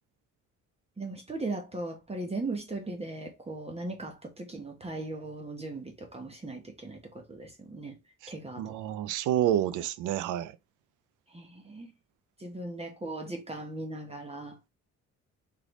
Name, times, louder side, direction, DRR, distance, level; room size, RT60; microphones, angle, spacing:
voice 1, 1.0-8.0 8.3-8.8 11.3-11.9 12.4-14.6, right 2 dB, 20° right, 0.9 m, -38 dB
voice 2, 8.6-10.6, right 11 dB, 85° right, 0.5 m, -29 dB
3.6 x 3.3 x 3.1 m
cardioid pair, 90°, 30 cm